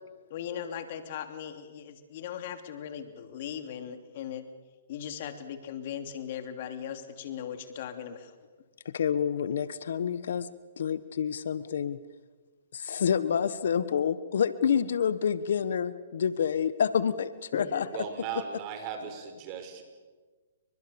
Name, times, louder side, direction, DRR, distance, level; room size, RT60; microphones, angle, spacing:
voice 1, 0.3-4.4 4.9-8.3 17.5-17.9 19.0-19.2, left 9 dB, 50° left, 7 dB, 3.0 m, -38 dB
voice 2, 8.8-12.0 12.7-17.8, left 7 dB, 70° left, 15 dB, 1.3 m, -28 dB
voice 3, 17.9-19.8, right 7 dB, 35° right, 7 dB, 5.5 m, -37 dB
29.5 x 23.5 x 7.1 m, 1.4 s
hypercardioid pair, 130°, 0 cm